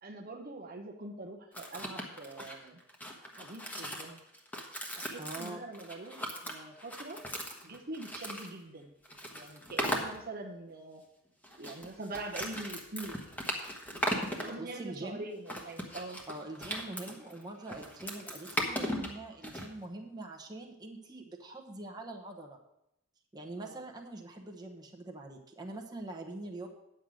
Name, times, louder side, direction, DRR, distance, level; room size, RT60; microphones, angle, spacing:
voice 1, 0.0-2.8 3.4-4.2 5.0-7.2 7.6-8.9 9.3-11.0 11.6-13.2 14.4-16.2 23.6-23.8, right 2 dB, 40° right, 2 dB, 0.9 m, -43 dB
sound 1, 1.5-8.5 9.0-10.2 11.4-14.5 15.5-19.7, equal, 10° left, 1.2 m, -37 dB
voice 2, 5.2-5.6 14.6-15.2 16.3-22.6 23.3-26.7, right 2 dB, 20° right, 0 dB, 1.0 m, -44 dB
10.0 x 7.7 x 5.0 m, 0.83 s
head